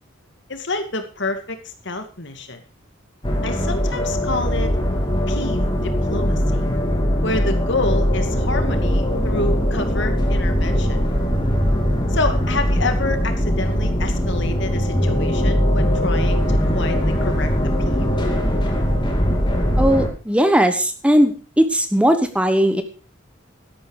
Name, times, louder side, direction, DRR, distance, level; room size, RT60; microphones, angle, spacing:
voice 1, 0.5-2.6 3.4-4.7 5.3-6.6 7.2-11.0 12.1-17.5 17.9-18.1, left 2 dB, 60° left, 7 dB, 2.4 m, -28 dB
sound 1, 3.2-20.1, equal, 25° left, 3.3 m, -20 dB
voice 2, 19.8-22.8, equal, 5° right, 8 dB, 1.2 m, -18 dB
13.0 x 12.0 x 4.9 m, 0.34 s
head